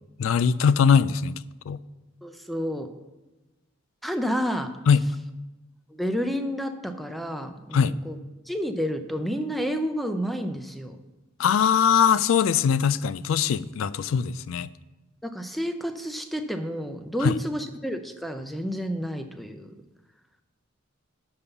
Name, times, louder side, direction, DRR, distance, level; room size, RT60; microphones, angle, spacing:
voice 1, 0.2-1.3 1.7-1.8 4.9-5.0 7.7-7.9 11.4-14.7 17.2-17.4, left 7 dB, 85° left, 17 dB, 0.3 m, -21 dB
voice 2, 2.2-2.9 4.0-4.8 5.9-8.2 8.5-11.0 15.2-19.7, equal, ahead, 7 dB, 0.5 m, -30 dB
6.8 x 5.4 x 6.9 m, 1.1 s
head